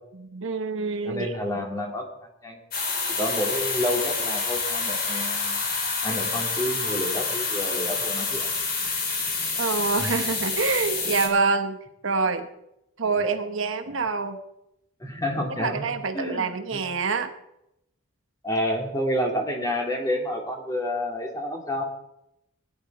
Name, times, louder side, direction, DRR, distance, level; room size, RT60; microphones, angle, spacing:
voice 1, 0.2-1.3 9.6-11.8 12.0-12.5 13.0-14.4 15.6-17.3, right 4 dB, 60° right, 8 dB, 1.1 m, -26 dB
voice 2, 1.0-2.1 2.4-2.6 3.2-5.6 6.0-8.5 10.0-10.1 13.8-14.0 15.0-15.9 16.1-16.8 18.4-21.8, left 1 dB, 15° left, 2 dB, 2.5 m, -29 dB
sound 1, 2.7-11.3, left 4 dB, 45° left, 3.2 m, -28 dB
17.5 x 11.0 x 4.6 m, 0.82 s
head